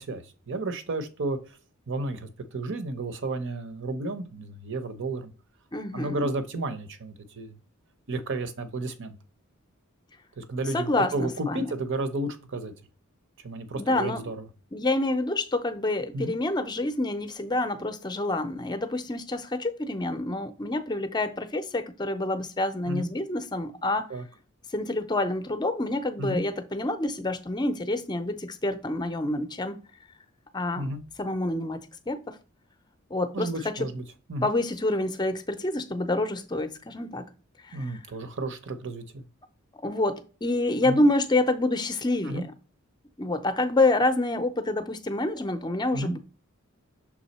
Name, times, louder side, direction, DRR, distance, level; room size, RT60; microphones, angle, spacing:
voice 1, 0.0-1.4 1.9-5.3 5.9-7.6 8.1-9.2 10.4-12.7 13.4-14.4 16.1-16.3 22.9-23.1 24.1-24.2 26.2-26.4 30.7-31.0 33.3-34.0 34.3-34.5 37.7-39.2 40.8-41.0 42.2-42.4 45.9-46.1, right 2 dB, 60° right, 0.8 m, -32 dB
voice 2, 5.7-6.3 10.7-11.7 13.8-14.2 14.7-24.1 24.7-29.8 30.5-30.9 31.2-32.4 33.1-33.9 34.4-37.3 37.6-38.0 39.8-42.5 43.2-46.2, left 2 dB, 20° left, 0.6 m, -27 dB
6.2 x 3.6 x 4.2 m
head